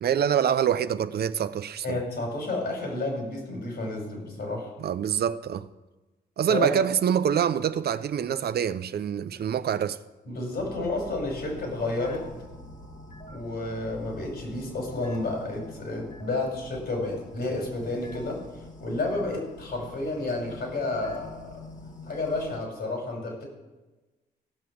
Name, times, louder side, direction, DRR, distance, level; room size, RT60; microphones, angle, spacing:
voice 1, 0.0-2.0 4.8-5.7 6.4-10.0, right 8 dB, 65° right, 0.6 m, -25 dB
voice 2, 1.8-4.7 6.5-6.7 10.3-12.3 13.3-18.4 18.8-21.6 22.1-23.4, left 2 dB, 70° left, 5.3 m, -31 dB
sound 1, 10.6-22.6, left 2 dB, 45° left, 1.8 m, -45 dB
15.5 x 6.8 x 6.3 m
cardioid pair, 70°, 18 cm